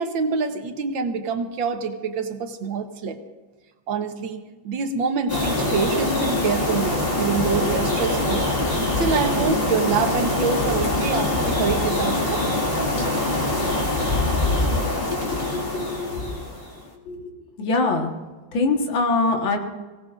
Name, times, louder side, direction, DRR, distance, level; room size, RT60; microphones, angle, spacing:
voice 1, 0.0-3.2 3.9-8.5 9.0-12.4, right 5 dB, 85° right, 6 dB, 1.9 m, -26 dB
sound 1, 5.3-16.8, left 2 dB, 30° left, 2.2 m, -23 dB
voice 2, 15.1-16.3 17.1-17.3 17.6-18.1 18.5-19.6, left 3 dB, 85° left, 2 dB, 2.3 m, -24 dB
23.0 x 17.5 x 2.5 m, 1.3 s
omnidirectional pair, 2.1 m